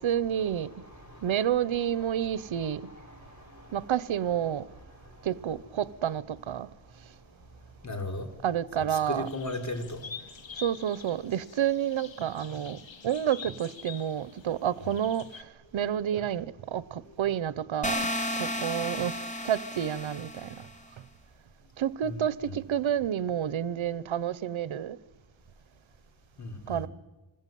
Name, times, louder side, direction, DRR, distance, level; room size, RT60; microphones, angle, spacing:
voice 1, 0.0-0.7 1.2-2.9 3.7-4.7 5.2-6.7 8.4-9.3 10.6-15.4 15.7-18.1 18.4-19.2 19.4-20.5 21.8-25.0 26.7-26.9, right 10 dB, 90° right, 0.9 m, -29 dB
voice 2, 0.7-1.4 2.2-2.7 2.9-3.8 7.8-8.3 8.8-10.1 22.0-22.2 22.4-22.6 26.4-26.9, left 2 dB, 35° left, 4.5 m, -38 dB
sound 1, 9.2-15.4, left 6 dB, 75° left, 2.2 m, -46 dB
sound 2, 17.8-20.7, left 1 dB, 15° left, 3.0 m, -33 dB
26.5 x 20.5 x 9.3 m
wide cardioid pair, 85°, 46 cm